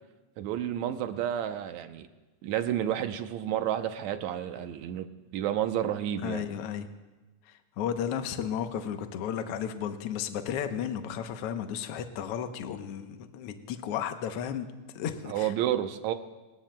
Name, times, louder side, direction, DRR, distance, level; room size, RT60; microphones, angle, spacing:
voice 1, 0.4-2.1 2.4-5.1 5.3-6.5 15.3-16.1, right 11 dB, 75° right, 8 dB, 1.9 m, -30 dB
voice 2, 6.2-6.9 7.5-14.7 14.9-15.5, left 8 dB, 70° left, 7 dB, 1.5 m, -34 dB
26.0 x 19.0 x 2.2 m, 1.2 s
omnidirectional pair, 3.6 m